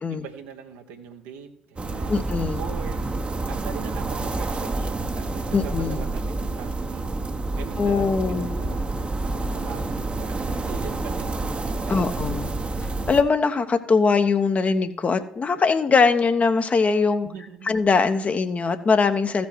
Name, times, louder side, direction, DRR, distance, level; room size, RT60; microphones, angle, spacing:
voice 1, 0.1-2.2 2.5-3.1 3.5-11.4 11.8-12.4 17.2-17.8, right 7 dB, 70° right, 5 dB, 1.2 m, -41 dB
sound 1, 1.8-13.2, right 2 dB, 30° right, 1.0 m, -28 dB
voice 2, 2.1-2.6 5.5-6.0 7.8-8.6 11.9-12.5 13.1-17.3 17.6-19.5, left 4 dB, 35° left, 8 dB, 1.0 m, -21 dB
15.5 x 5.3 x 4.5 m, 0.77 s
figure-of-eight pair, 45°, 4 cm